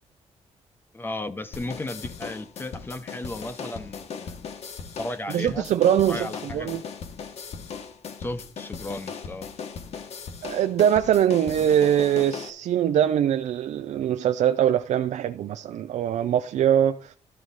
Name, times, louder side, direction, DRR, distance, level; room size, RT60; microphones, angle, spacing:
voice 1, 0.9-4.4 5.0-5.7 6.1-6.7 8.2-9.5, left 2 dB, 15° left, 0.7 m, -35 dB
sound 1, 1.5-12.5, left 6 dB, 60° left, 1.1 m, -38 dB
voice 2, 5.3-6.8 10.4-17.1, right 10 dB, 75° right, 0.4 m, -22 dB
13.0 x 4.7 x 4.1 m
wide cardioid pair, 180°, 12 cm